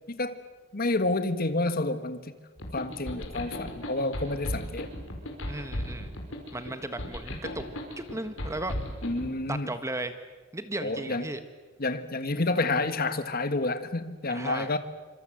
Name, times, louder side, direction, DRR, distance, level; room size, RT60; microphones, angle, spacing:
voice 1, 0.1-0.4 0.7-2.2 2.7-4.9 9.0-9.7 10.8-11.3 11.8-14.8, left 2 dB, 50° left, 11 dB, 1.6 m, -29 dB
sound 1, 2.6-9.3, left 1 dB, 85° left, 5.2 m, -36 dB
voice 2, 5.5-6.1 6.5-7.6 8.0-8.7 9.5-10.1 10.5-11.4 14.3-14.7, right 2 dB, 15° right, 9 dB, 1.4 m, -35 dB
26.0 x 26.0 x 7.8 m, 1.3 s
head